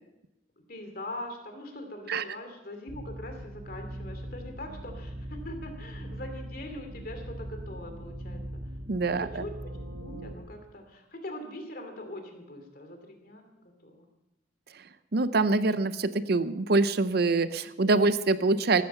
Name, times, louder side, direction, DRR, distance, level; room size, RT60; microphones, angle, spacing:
voice 1, 0.6-8.7 9.2-14.1, left 1 dB, 50° left, 5 dB, 2.7 m, -42 dB
sound 1, 2.9-10.3, right 1 dB, 75° right, 1.9 m, -40 dB
voice 2, 8.9-9.3 15.1-18.8, right 3 dB, 55° right, 13 dB, 0.6 m, -24 dB
15.0 x 13.5 x 5.6 m, 0.92 s
head